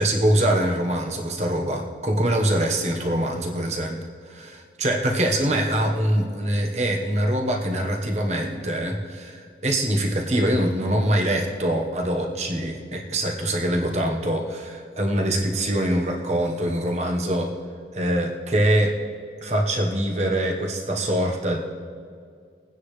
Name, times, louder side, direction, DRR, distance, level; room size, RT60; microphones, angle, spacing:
voice 1, 0.0-4.0 4.3-17.5 17.9-18.9 19.4-21.6, right 1 dB, 40° right, 2 dB, 1.3 m, -24 dB
22.0 x 9.5 x 3.3 m, 2.1 s
head